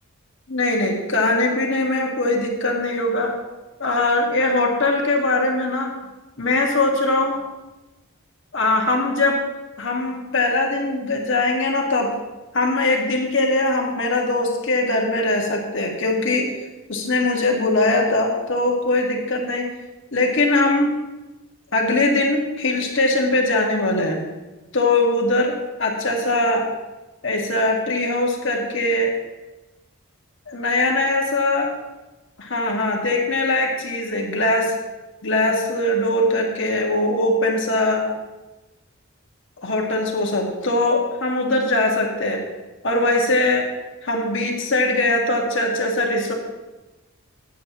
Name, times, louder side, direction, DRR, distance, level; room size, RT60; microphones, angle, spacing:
voice 1, 0.5-3.3 3.8-5.9 6.4-7.4 8.5-9.4 9.8-12.1 12.5-16.5 16.9-19.7 20.1-20.9 21.7-24.2 24.7-25.5 25.8-26.7 27.2-29.2 30.5-31.7 32.4-34.7 35.2-38.0 39.6-42.4 42.8-43.7 44.0-46.3, left 2 dB, 60° left, 0 dB, 1.8 m, -21 dB
15.0 x 9.4 x 3.0 m, 1.1 s
head